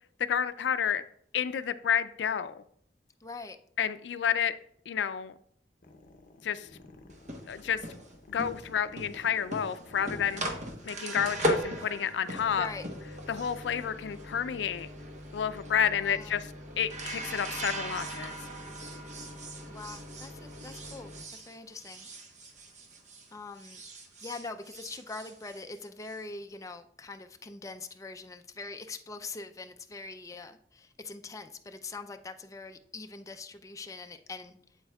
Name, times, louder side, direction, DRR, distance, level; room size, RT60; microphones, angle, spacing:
voice 1, 0.3-1.0 1.3-2.6 3.8-4.5 4.9-5.3 6.4-6.7 7.4-7.8 8.3-10.4 10.8-12.7 13.3-14.9 15.3-16.5 16.8-18.3, left 8 dB, 85° left, 13 dB, 0.4 m, -30 dB
voice 2, 3.2-3.6 11.8-11.9 12.5-12.9 16.0-16.4 19.7-22.1 23.3-23.8 24.2-34.6, left 3 dB, 20° left, 6 dB, 0.4 m, -43 dB
sound 1, 5.8-12.5, left 2 dB, 50° left, 0.7 m, -53 dB
sound 2, 7.1-23.3 23.6-26.2, equal, 45° right, 1.0 m, -38 dB
8.0 x 7.7 x 2.3 m, 0.64 s
head